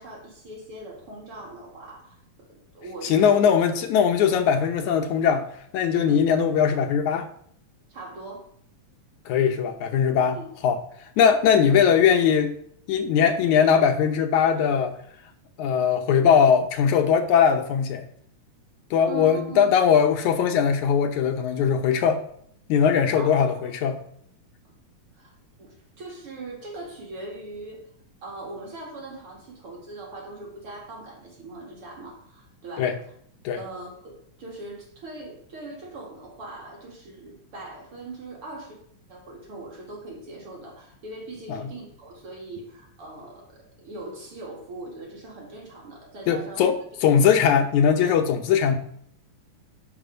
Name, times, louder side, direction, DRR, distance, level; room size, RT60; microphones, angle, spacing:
voice 1, 0.0-3.5 6.0-6.1 7.9-8.5 10.3-10.5 19.1-19.8 23.1-23.7 25.2-25.3 25.6-27.8 28.2-32.9 33.6-38.8 39.1-46.6 47.1-47.2, right 2 dB, 45° right, -2 dB, 2.9 m, -40 dB
voice 2, 3.0-5.5 5.7-7.3 9.3-10.8 11.2-12.5 12.9-15.0 15.6-18.0 18.9-22.2 22.7-24.0 32.8-33.0 33.4-33.6 41.5-41.7 46.3-48.8, left 7 dB, 75° left, 5 dB, 2.2 m, -20 dB
12.5 x 4.9 x 5.1 m, 0.65 s
omnidirectional pair, 3.6 m